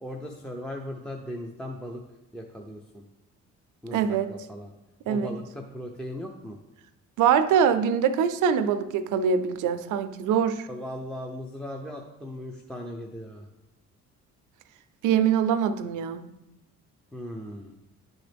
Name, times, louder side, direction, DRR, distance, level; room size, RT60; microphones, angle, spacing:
voice 1, 0.0-2.0 2.3-3.0 3.8-4.7 5.1-6.6 10.7-13.5 17.1-17.7, left 1 dB, 5° left, 0 dB, 0.6 m, -38 dB
voice 2, 3.9-4.3 5.1-5.4 7.2-10.7 15.0-16.2, right 7 dB, 80° right, 11 dB, 0.6 m, -23 dB
9.8 x 3.9 x 3.4 m, 0.94 s
cardioid pair, 90°, 30 cm